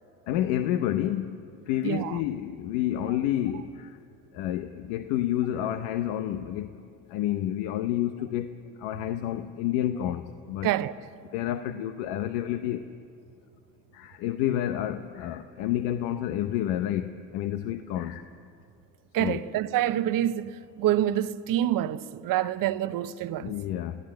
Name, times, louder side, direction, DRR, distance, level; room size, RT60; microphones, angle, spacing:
voice 1, 0.3-1.4 1.7-3.9 4.3-6.7 7.1-8.5 8.8-10.2 10.5-10.7 11.3-12.8 13.9-18.2 19.2-19.4 22.4-22.5 23.4-24.0, left 12 dB, 80° left, 0.8 m, -29 dB
voice 2, 1.8-2.2 10.6-10.9 19.1-23.5, right 12 dB, 65° right, 0.9 m, -27 dB
27.0 x 15.5 x 7.6 m
hypercardioid pair, 60°, 36 cm